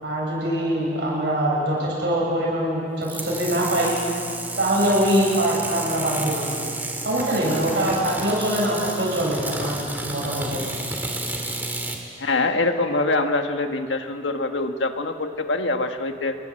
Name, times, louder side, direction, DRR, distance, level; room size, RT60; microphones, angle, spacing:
voice 1, 0.0-3.9 4.6-6.5 7.0-10.6, right 1 dB, 65° right, -4 dB, 7.8 m, -23 dB
sound 1, 3.0-12.0, right 2 dB, 10° right, 2.5 m, -31 dB
voice 2, 12.2-16.4, left 2 dB, 80° left, 6 dB, 1.6 m, -24 dB
28.0 x 22.5 x 7.8 m, 2.7 s
head